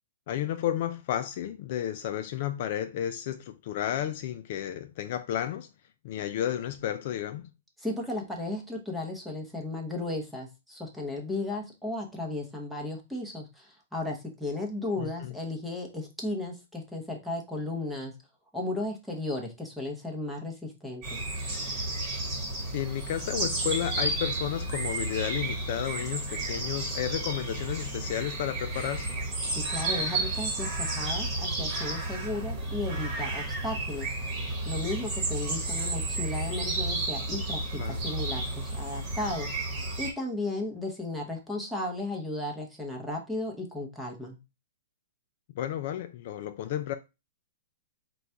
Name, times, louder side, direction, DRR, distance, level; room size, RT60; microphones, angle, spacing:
voice 1, 0.3-5.7 6.0-7.5 15.0-15.3 22.7-29.2 37.8-38.0 45.5-46.9, left 11 dB, 45° left, 0.3 m, -32 dB
voice 2, 7.8-18.1 18.5-21.2 29.5-34.1 34.4-44.4, left 2 dB, ahead, 0.8 m, -35 dB
sound 1, 21.0-40.1, right 2 dB, 25° right, 1.2 m, -32 dB
3.9 x 2.3 x 4.4 m
hypercardioid pair, 165°, 0 cm